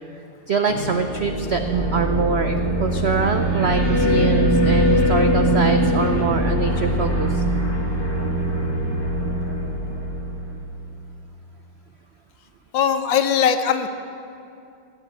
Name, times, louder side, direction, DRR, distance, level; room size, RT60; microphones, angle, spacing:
voice 1, 0.5-7.4, right 5 dB, 85° right, 6 dB, 0.5 m, -24 dB
sound 1, 0.7-10.9, right 1 dB, 15° left, 1.6 m, -22 dB
voice 2, 12.7-13.9, left 8 dB, 80° left, 9 dB, 1.6 m, -20 dB
19.0 x 7.9 x 8.9 m, 2.5 s
omnidirectional pair, 2.0 m